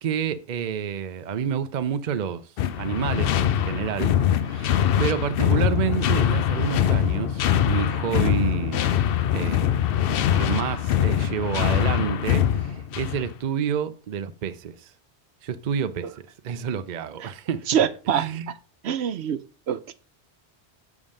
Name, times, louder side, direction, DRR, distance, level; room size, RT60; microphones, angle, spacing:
voice 1, 0.0-2.5 2.8-4.2 4.4-4.7 5.0-8.9 9.3-9.8 10.1-14.9 15.4-16.1 16.4-17.7 18.1-18.5, right 8 dB, 50° right, 0.6 m, -29 dB
sound 1, 2.6-13.3, left 10 dB, 65° left, 0.7 m, -23 dB
voice 2, 5.4-5.8 17.2-17.3 17.7-18.5 18.8-19.4 19.7-19.9, right 8 dB, 75° right, 0.9 m, -26 dB
7.1 x 3.6 x 6.3 m
omnidirectional pair, 1.1 m